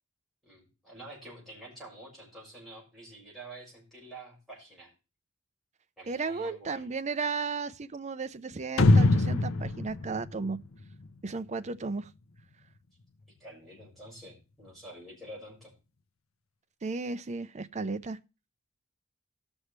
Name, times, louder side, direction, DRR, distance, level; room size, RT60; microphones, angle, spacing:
voice 1, 0.4-4.9 6.0-6.9 13.4-15.7, right 1 dB, ahead, 6.3 m, -48 dB
voice 2, 6.1-10.6 11.2-12.1 16.8-18.2, right 4 dB, 35° right, 0.6 m, -34 dB
sound 1, 8.8-11.3, left 2 dB, 90° left, 0.7 m, -23 dB
18.0 x 6.3 x 3.2 m
head